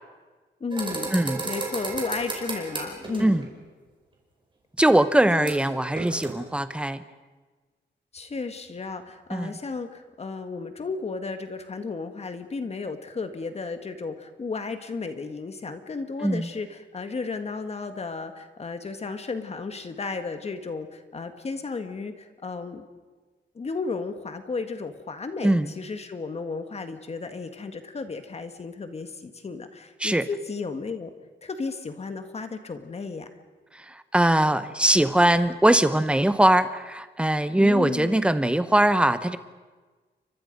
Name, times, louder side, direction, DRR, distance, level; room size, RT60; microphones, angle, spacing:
voice 1, 0.6-1.1 1.5-3.5 5.2-5.5 8.1-22.8 23.6-31.1 31.4-33.3 37.6-38.3, left 4 dB, 35° left, 8 dB, 1.7 m, -34 dB
sound 1, 0.7-3.4 5.4-5.6 5.9-6.3, right 3 dB, 25° right, 5.0 m, -33 dB
voice 2, 4.8-7.0 9.3-9.5 16.2-16.5 25.4-25.7 30.0-30.2 33.9-39.4, right 1 dB, 5° right, 11 dB, 1.0 m, -21 dB
29.5 x 24.5 x 5.3 m, 1.3 s
wide cardioid pair, 165°, 19 cm